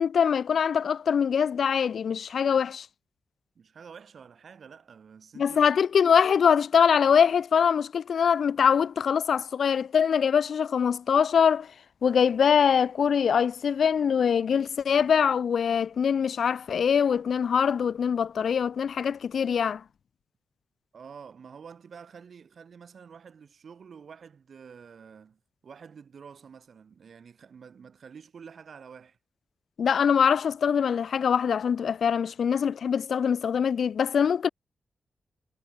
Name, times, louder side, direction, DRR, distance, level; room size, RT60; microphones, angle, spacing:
voice 1, 0.0-2.9 5.4-11.7 12.0-19.8 29.8-34.5, left 7 dB, 65° left, 0.4 m, -23 dB
voice 2, 3.5-5.6 20.9-29.2, right 6 dB, 55° right, 6.2 m, -48 dB
wide cardioid pair, 150°, 0 cm